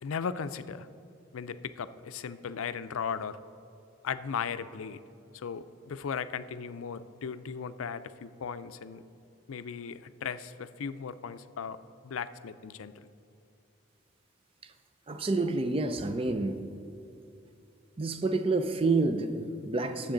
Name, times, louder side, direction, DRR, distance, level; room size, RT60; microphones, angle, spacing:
voice 1, 0.0-0.9 1.3-3.4 4.0-5.0 5.3-9.0 9.5-11.8 12.0-13.1, left 6 dB, 85° left, 12 dB, 0.4 m, -37 dB
voice 2, 15.1-16.6 18.0-20.1, right 3 dB, 25° right, 8 dB, 0.5 m, -28 dB
18.5 x 7.5 x 3.9 m, 2.7 s
head